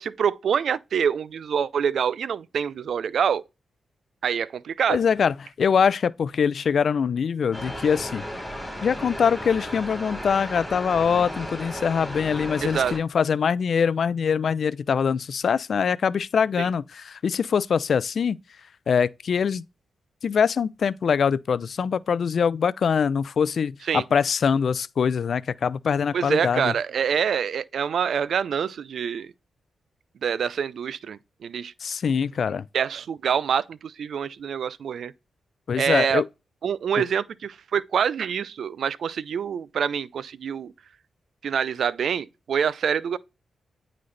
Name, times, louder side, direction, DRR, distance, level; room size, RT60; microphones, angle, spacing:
voice 1, 0.0-3.4 4.2-5.0 12.6-12.9 16.6-16.7 23.9-24.0 26.1-29.3 30.2-31.7 32.7-35.1 35.8-36.2 36.6-40.7 41.4-43.2, right 7 dB, 75° right, 0.4 m, -26 dB
voice 2, 4.9-8.2 8.8-18.4 18.9-19.6 20.2-26.7 31.8-32.6 35.7-36.3, left 6 dB, 65° left, 0.3 m, -23 dB
sound 1, 7.5-13.0, equal, 5° left, 4.1 m, -35 dB
9.4 x 3.9 x 3.2 m
cardioid pair, 60°, 0 cm